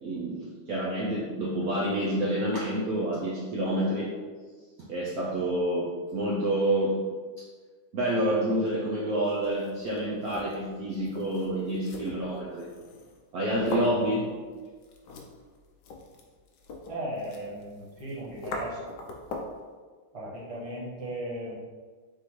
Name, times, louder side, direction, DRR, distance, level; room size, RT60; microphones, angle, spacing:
voice 1, 0.0-4.1 4.8-7.0 7.9-12.7 13.3-14.3, right 1 dB, 80° right, -6 dB, 0.8 m, -28 dB
sound 1, 9.4-19.6, left 2 dB, 80° left, 0.9 m, -42 dB
voice 2, 16.9-18.8 20.1-21.6, right 1 dB, 25° right, -7 dB, 0.8 m, -36 dB
4.2 x 3.7 x 3.0 m, 1.5 s
omnidirectional pair, 2.4 m